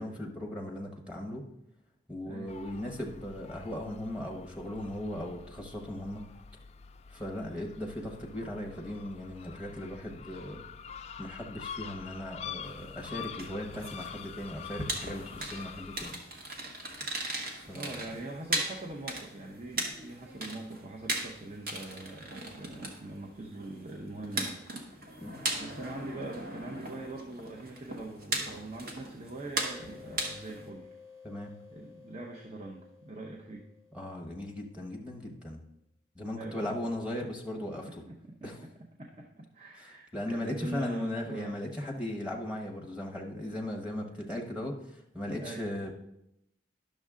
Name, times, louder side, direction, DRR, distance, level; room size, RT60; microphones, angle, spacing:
voice 1, 0.0-1.4 2.1-6.2 7.1-10.6 11.2-16.2 17.5-18.0 25.2-25.4 31.2-31.5 33.9-35.6 36.1-37.9 38.4-38.6 39.8-45.9, left 1 dB, 5° right, 0 dB, 1.1 m, -38 dB
sound 1, 2.5-16.1, left 7 dB, 35° left, 0.3 m, -46 dB
sound 2, 12.6-30.7, right 2 dB, 50° right, 1.3 m, -38 dB
voice 2, 17.7-25.3 25.6-30.9 31.7-33.6 36.4-36.9 37.8-41.6 45.4-45.7, right 2 dB, 35° right, 0 dB, 0.7 m, -43 dB
sound 3, 29.6-35.0, left 5 dB, 90° right, 2.6 m, -54 dB
10.5 x 6.4 x 3.7 m, 0.82 s
head